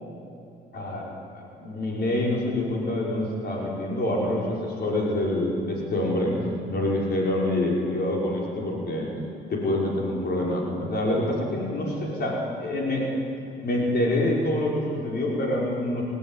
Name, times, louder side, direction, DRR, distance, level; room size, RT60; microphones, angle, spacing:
voice 1, 0.7-6.3 6.7-9.1 9.5-13.2 13.6-16.0, left 1 dB, 55° left, -3 dB, 5.2 m, -26 dB
30.0 x 12.0 x 9.2 m, 2.8 s
cardioid pair, 90°, 20 cm